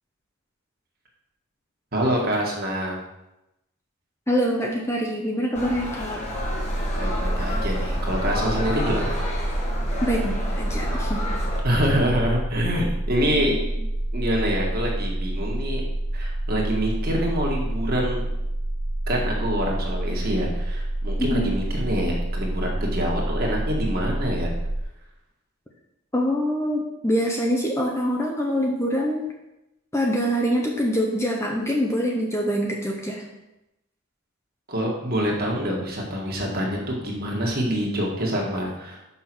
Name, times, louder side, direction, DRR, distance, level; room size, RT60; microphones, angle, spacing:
voice 1, 1.9-3.0 7.0-9.2 11.6-13.5 14.1-15.8 16.1-18.3 19.1-24.5 34.7-39.0, equal, 45° right, -1 dB, 1.8 m, -26 dB
voice 2, 4.3-6.2 10.0-11.2 13.2-13.6 21.2-21.5 26.1-29.3 29.9-33.2, equal, 10° left, -1 dB, 0.8 m, -25 dB
sound 1, 5.5-11.6, left 1 dB, 30° left, 1.5 m, -31 dB
sound 2, 6.3-24.8, right 1 dB, 90° right, 1.1 m, -28 dB
6.0 x 5.7 x 6.1 m, 0.92 s
head